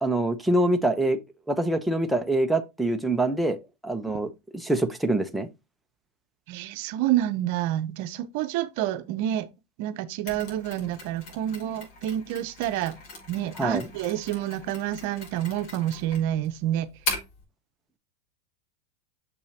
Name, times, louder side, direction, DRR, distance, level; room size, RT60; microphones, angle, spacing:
voice 1, 0.0-1.2 1.5-3.6 3.8-5.5 13.6-13.9, right 1 dB, 5° right, 0.9 m, -25 dB
voice 2, 6.5-9.5 9.8-13.0 13.3-16.9, right 12 dB, 60° right, 0.8 m, -28 dB
Mechanisms, 10.3-17.4, left 3 dB, 55° left, 4.8 m, -39 dB
6.8 x 5.4 x 2.8 m
hypercardioid pair, 115°, 0 cm